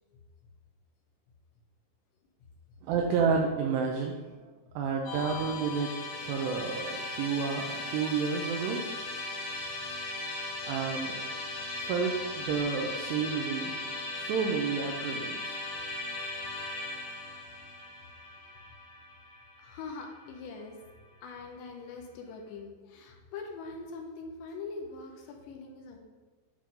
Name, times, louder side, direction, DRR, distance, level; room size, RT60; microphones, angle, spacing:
voice 1, 2.8-4.5 4.8-5.9 6.2-8.8 10.7-11.2 11.8-15.6, right 5 dB, 80° right, 2 dB, 2.5 m, -30 dB
Musical instrument, 5.0-20.2, left 2 dB, 60° left, 1.9 m, -38 dB
voice 2, 19.6-20.8 21.2-26.0, left 4 dB, 80° left, 2 dB, 2.9 m, -43 dB
10.5 x 5.3 x 3.7 m, 1.3 s
omnidirectional pair, 5.4 m